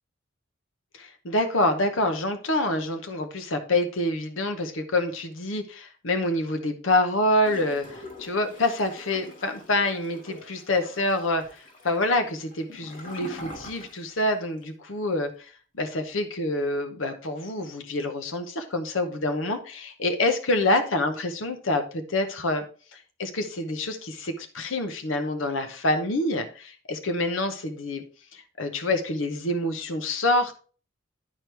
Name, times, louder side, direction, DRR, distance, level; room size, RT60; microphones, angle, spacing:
voice 1, 0.9-15.5 15.8-22.7 22.9-28.0 28.3-30.6, left 2 dB, 75° left, 7 dB, 0.9 m, -27 dB
Gurgling / Toilet flush, 7.4-14.3 14.6-14.7, left 1 dB, 45° left, 2.6 m, -44 dB
11.0 x 4.6 x 3.3 m, 0.39 s
head